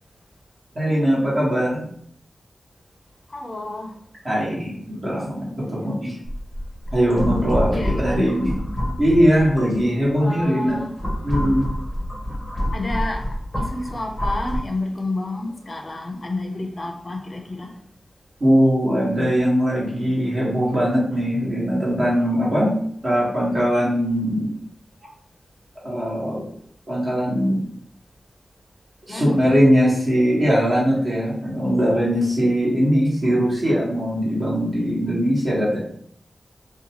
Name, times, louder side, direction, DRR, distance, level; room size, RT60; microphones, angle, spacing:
voice 1, 0.7-1.8 4.2-6.1 6.9-8.5 9.0-10.8 11.2-11.7 18.4-22.7 23.0-24.5 25.8-26.4 26.9-27.6 29.1-35.8, equal, 45° right, 1.2 m, -20 dB
voice 2, 3.3-3.9 7.7-8.4 10.2-11.0 12.7-17.7 29.1-29.4, left 2 dB, 40° left, 0.4 m, -30 dB
sound 1, 6.3-10.1 10.7-14.6, equal, 5° left, 0.7 m, -27 dB
2.7 x 2.2 x 2.8 m
wide cardioid pair, 110°, 0 cm